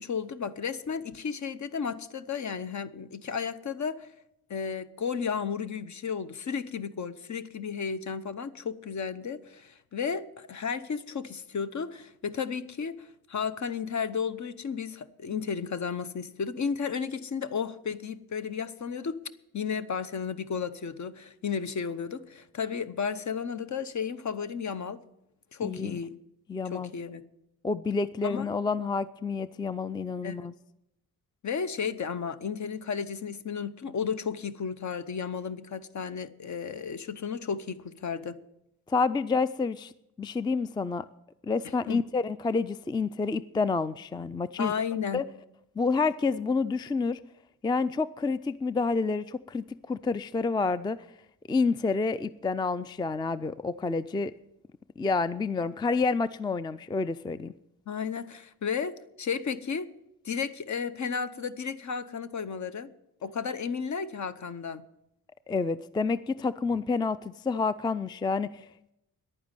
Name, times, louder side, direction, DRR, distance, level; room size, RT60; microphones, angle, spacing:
voice 1, 0.0-4.1 4.5-25.0 25.5-26.2 26.7-27.2 28.2-28.5 30.2-30.5 31.4-38.4 41.9-42.0 44.6-45.2 57.9-59.9 60.2-62.9 63.2-64.8, left 6 dB, 50° left, 0.9 m, -33 dB
voice 2, 25.6-26.0 26.5-26.9 27.6-30.5 38.9-39.9 40.2-41.1 41.4-44.7 45.1-45.2 45.8-47.2 47.6-51.0 51.5-54.3 55.0-57.5 65.5-68.7, left 4 dB, 10° left, 0.4 m, -29 dB
11.0 x 9.3 x 9.0 m
cardioid pair, 85°, 38 cm